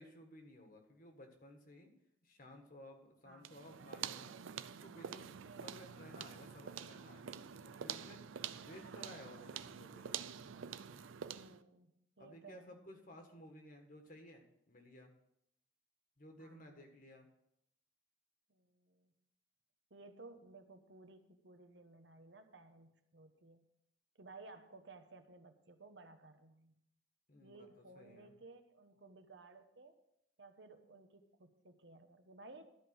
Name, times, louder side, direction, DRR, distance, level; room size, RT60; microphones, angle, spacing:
voice 1, 0.0-1.9 2.2-4.3 4.7-8.3 8.6-10.2 12.2-15.1 16.2-17.3 27.3-28.3, left 1 dB, 45° left, 4 dB, 1.7 m, -57 dB
sound 1, 3.4-11.6, right 8 dB, 85° right, 0.5 m, -47 dB
voice 2, 5.4-5.9 8.7-9.0 11.3-12.7 16.4-16.9 18.5-19.1 19.9-23.7 24.2-26.8 27.4-30.0 30.4-32.8, right 3 dB, 60° right, 7 dB, 1.1 m, -58 dB
13.0 x 5.2 x 7.8 m, 0.77 s
head